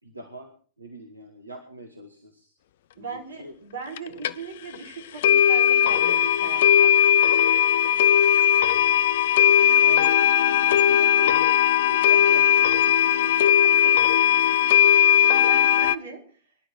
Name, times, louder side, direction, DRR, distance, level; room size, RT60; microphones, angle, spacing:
voice 1, 0.0-2.5 2.9-3.5 9.4-10.1 10.7-11.6 11.9-13.3, equal, 85° right, 5 dB, 2.2 m, -42 dB
voice 2, 3.0-7.0 10.5-10.7 12.3-12.4 13.4-14.0 14.8-15.0 15.4-16.3, right 4 dB, 65° right, 5 dB, 4.2 m, -39 dB
sound 1, 4.0-4.1 4.2-4.3 4.7-4.8 5.2-15.9, left 9 dB, 55° left, 0.7 m, -18 dB
24.5 x 11.5 x 4.5 m, 0.41 s
figure-of-eight pair, 90°, 0 cm